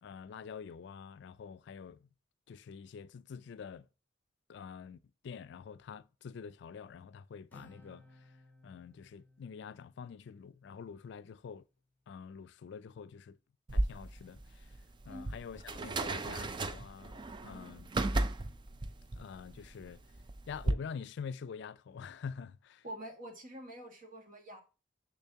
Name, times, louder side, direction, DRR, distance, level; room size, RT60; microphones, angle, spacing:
voice 1, 0.0-2.1 2.5-3.9 4.5-5.0 5.2-8.0 8.6-11.6 12.1-13.4 13.7-14.7 15.1-17.9 19.2-20.0 20.5-22.8, left 6 dB, 65° left, 0.3 m, -46 dB
Acoustic guitar, 7.5-11.2, left 1 dB, 10° left, 0.7 m, -61 dB
sound 1, 13.7-20.7, right 2 dB, 25° right, 0.4 m, -35 dB
voice 2, 15.1-15.4 15.8-15.9 22.8-24.6, equal, 50° right, 1.7 m, -46 dB
7.0 x 6.2 x 2.8 m
head